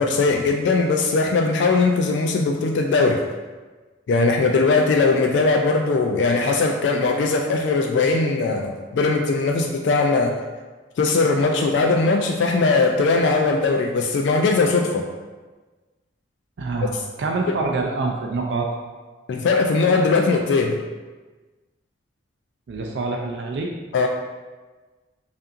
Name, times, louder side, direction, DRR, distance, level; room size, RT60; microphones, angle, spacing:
voice 1, 0.0-3.2 4.1-10.3 11.0-15.1 19.3-20.8 23.9-24.1, left 3 dB, 70° left, 3 dB, 0.3 m, -20 dB
voice 2, 16.6-18.7 22.7-23.7, right 3 dB, 65° right, 1 dB, 0.4 m, -26 dB
5.2 x 2.5 x 2.5 m, 1.3 s
head